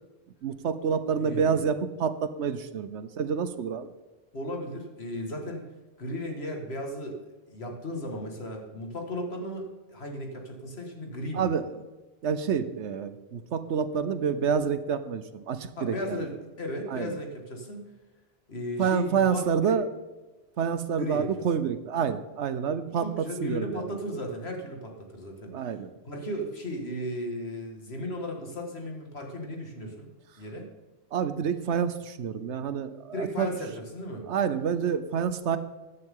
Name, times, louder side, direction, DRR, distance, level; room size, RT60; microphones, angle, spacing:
voice 1, 0.4-3.9 11.3-11.6 12.2-16.2 16.9-17.2 18.8-19.9 20.6-24.0 25.5-25.9 31.1-33.6 34.3-35.6, right 7 dB, 75° right, 12 dB, 1.1 m, -28 dB
voice 2, 1.2-1.7 4.3-5.6 6.0-7.2 7.5-11.5 15.8-17.8 18.5-19.8 21.0-21.3 23.0-25.5 26.0-30.1 30.4-30.7 33.1-34.2, left 1 dB, 60° left, 2 dB, 2.3 m, -35 dB
13.5 x 10.5 x 3.8 m, 1.2 s
omnidirectional pair, 1.2 m